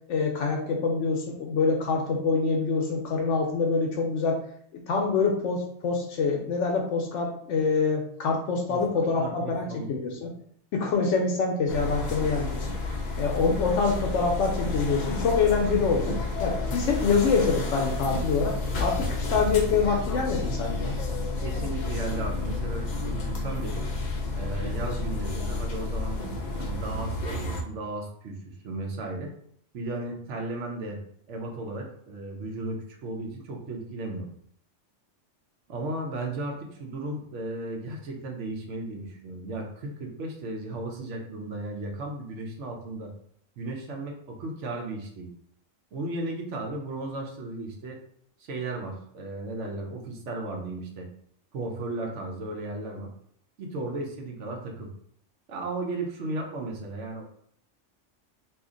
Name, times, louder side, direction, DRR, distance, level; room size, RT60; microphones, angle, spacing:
voice 1, 0.1-4.4 4.7-10.4 10.7-12.6 13.2-16.1 16.4-21.0, left 4 dB, 70° left, 1 dB, 0.9 m, -25 dB
voice 2, 8.7-9.9 12.0-12.1 21.4-23.9 24.3-26.2 26.6-29.3 29.7-31.0 31.3-34.3 35.7-43.1 43.6-45.3 45.9-48.0 48.4-51.1 51.5-53.1 53.6-54.9 55.5-57.2, right 2 dB, 70° right, 1 dB, 1.0 m, -35 dB
sound 1, 11.7-27.6, left 3 dB, 55° left, 0.5 m, -30 dB
2.8 x 2.4 x 3.7 m, 0.66 s
omnidirectional pair, 1.3 m